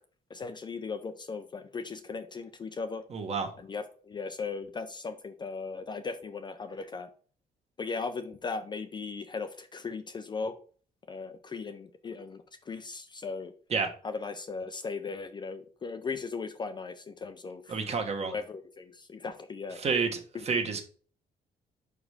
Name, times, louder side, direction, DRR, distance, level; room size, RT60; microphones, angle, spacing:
voice 1, 0.3-3.0 3.6-7.1 7.8-10.6 11.1-13.5 14.0-17.8 18.3-19.8 20.3-20.4, left 4 dB, 25° left, 8 dB, 0.5 m, -37 dB
voice 2, 3.1-3.5 13.7-13.9 17.7-18.3 19.8-20.2 20.4-20.8, right 5 dB, 40° right, 4 dB, 1.3 m, -29 dB
5.5 x 5.0 x 4.9 m, 0.42 s
wide cardioid pair, 180°, 17 cm